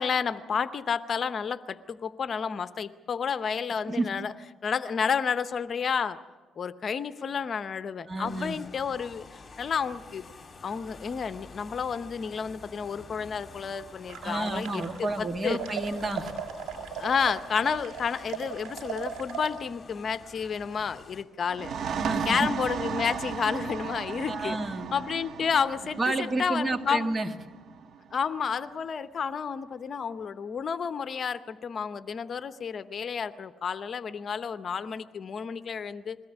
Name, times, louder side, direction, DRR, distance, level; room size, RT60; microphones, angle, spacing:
voice 1, 0.0-4.3 4.6-6.2 6.6-9.3 9.6-10.2 10.6-14.8 15.2-15.6 17.0-21.7 22.3-24.6 24.9-26.0 26.4-27.1 28.1-36.2, left 6 dB, 50° left, 12 dB, 0.7 m, -30 dB
voice 2, 3.9-4.2 8.1-8.6 14.2-16.3 22.0-22.5 24.3-24.9 26.0-27.3, right 2 dB, 30° right, 6 dB, 1.8 m, -30 dB
sound 1, 8.2-21.2, left 4 dB, 35° left, 3.3 m, -49 dB
sound 2, 14.1-15.2 15.5-19.5, right 8 dB, 85° right, 5.7 m, -38 dB
sound 3, 21.5-28.9, right 7 dB, 65° right, 1.2 m, -36 dB
21.5 x 17.5 x 8.2 m, 1.3 s
cardioid pair, 90°, 0 cm